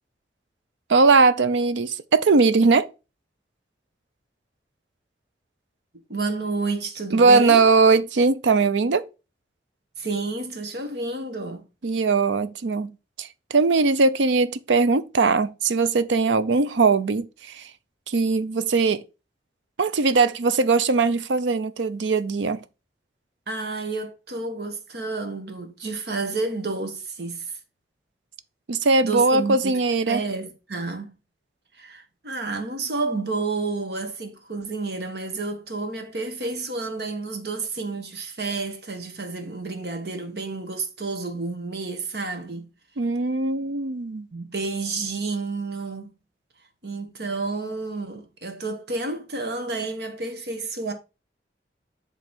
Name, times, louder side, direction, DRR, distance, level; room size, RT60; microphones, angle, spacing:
voice 1, 0.9-2.9 7.1-9.0 11.8-12.9 13.2-17.7 18.1-19.0 19.8-22.6 28.7-30.2 43.0-44.3, right 4 dB, 90° right, 0.6 m, -20 dB
voice 2, 6.1-7.6 10.0-11.7 23.5-27.6 29.0-29.8 30.1-31.1 31.7-42.7 44.3-46.1 46.8-50.9, right 3 dB, 65° right, 1.3 m, -30 dB
8.0 x 3.2 x 5.2 m
head